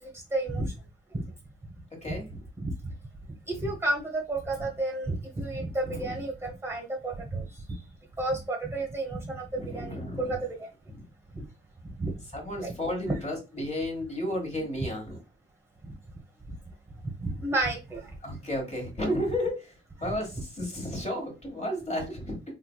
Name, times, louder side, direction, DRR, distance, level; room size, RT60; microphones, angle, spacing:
voice 1, 0.0-0.7 1.1-1.3 2.6-2.7 3.5-7.8 8.2-9.5 9.7-10.7 12.0-12.1 12.6-12.8 13.1-13.2 15.8-16.0 17.0-18.1 20.0-20.1, right 2 dB, 15° right, 1 dB, 1.0 m, -31 dB
voice 2, 1.9-2.3 5.8-6.2 9.5-10.4 10.9-11.0 12.3-15.2 18.2-19.7 20.0-22.4, left 1 dB, 35° left, 1 dB, 1.6 m, -33 dB
3.4 x 3.2 x 2.2 m, 0.28 s
cardioid pair, 90°, 20 cm